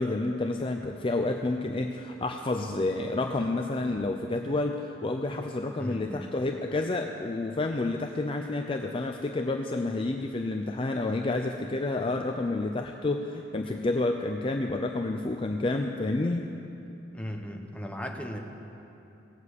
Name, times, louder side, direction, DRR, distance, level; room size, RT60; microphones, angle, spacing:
voice 1, 0.0-16.5, left 2 dB, 30° left, 3 dB, 0.5 m, -29 dB
voice 2, 5.8-6.2 17.1-18.4, equal, 5° left, 2 dB, 1.0 m, -36 dB
17.5 x 7.4 x 8.2 m, 2.9 s
head